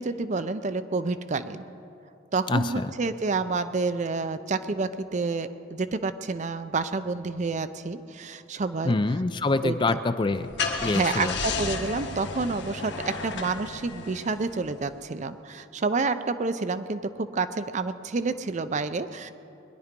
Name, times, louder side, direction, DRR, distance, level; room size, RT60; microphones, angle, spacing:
voice 1, 0.0-1.6 2.3-9.0 9.6-10.0 10.8-19.3, right 3 dB, 35° right, 11 dB, 0.5 m, -29 dB
voice 2, 2.5-2.9 8.8-10.5 10.8-11.4, left 3 dB, 25° left, 11 dB, 0.4 m, -25 dB
Car / Engine starting, 10.2-14.9, left 4 dB, 60° left, 1.3 m, -33 dB
21.0 x 11.0 x 5.2 m, 2.6 s
head